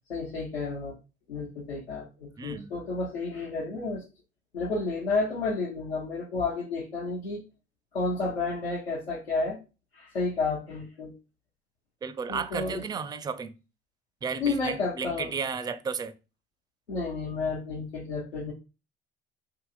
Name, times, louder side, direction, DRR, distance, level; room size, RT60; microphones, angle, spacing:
voice 1, 0.1-0.9 1.3-4.0 4.5-7.4 7.9-9.6 9.9-11.1 12.3-12.8 14.4-15.3 16.9-18.5, left 3 dB, 90° left, 0.8 m, -31 dB
voice 2, 2.4-2.7 12.0-13.5 14.2-16.1, right 5 dB, 15° right, 0.4 m, -33 dB
4.7 x 2.8 x 2.3 m
figure-of-eight pair, 55°, 30 cm